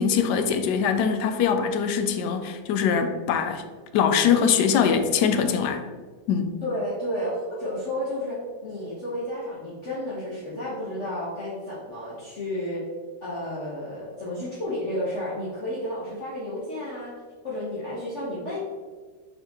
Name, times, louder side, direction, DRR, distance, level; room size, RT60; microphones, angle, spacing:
voice 1, 0.0-3.6 3.9-5.8 6.3-6.5, left 7 dB, 70° left, 7 dB, 1.0 m, -22 dB
voice 2, 6.6-12.8 13.2-17.1 17.4-18.6, left 1 dB, 40° left, -8 dB, 1.3 m, -31 dB
5.5 x 4.0 x 4.3 m, 1.5 s
omnidirectional pair, 2.2 m